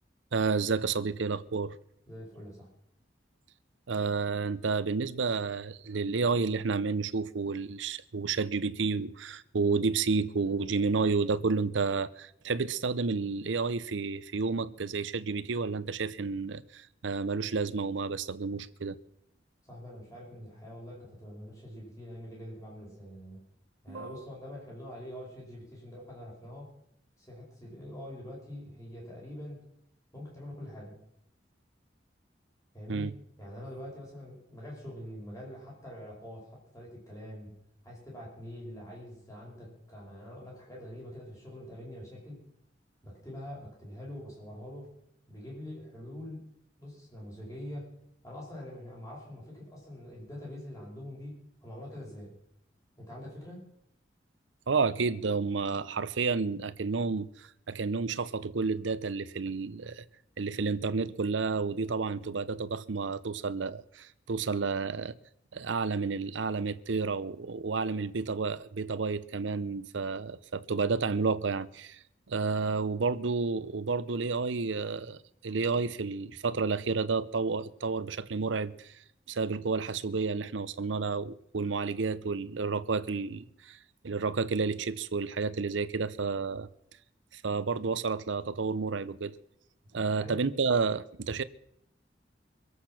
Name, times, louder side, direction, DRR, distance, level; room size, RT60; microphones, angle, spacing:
voice 1, 0.3-1.8 3.9-19.0 23.9-24.2 32.9-33.1 54.7-60.0 60.4-65.1 65.5-72.0 72.3-79.0 79.3-83.8 84.0-86.7 87.3-89.3 89.9-91.4, right 4 dB, 90° right, 0.7 m, -31 dB
voice 2, 2.1-2.7 19.6-23.5 23.8-26.7 27.2-29.6 30.1-31.0 32.7-33.1 33.4-37.6 37.8-42.4 43.0-44.9 45.3-46.5 46.8-47.9 48.2-52.4 53.0-53.6 90.1-90.4, left 1 dB, 15° left, 5.2 m, -44 dB
23.5 x 8.2 x 5.9 m
head